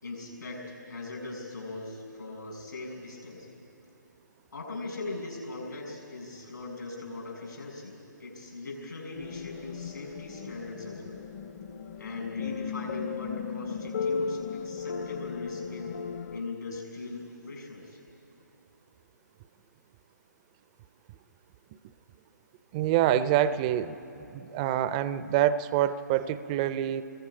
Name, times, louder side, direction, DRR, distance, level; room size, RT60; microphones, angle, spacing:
voice 1, 0.0-3.5 4.5-11.2 12.0-16.0 16.3-18.0, left 3 dB, 80° left, 0 dB, 6.8 m, -40 dB
sound 1, 9.1-16.4, left 5 dB, 40° left, 0.8 m, -36 dB
voice 2, 22.7-24.0 24.3-27.0, right 11 dB, 20° right, 15 dB, 0.4 m, -26 dB
29.5 x 22.0 x 5.0 m, 2.9 s
figure-of-eight pair, 145°, 10 cm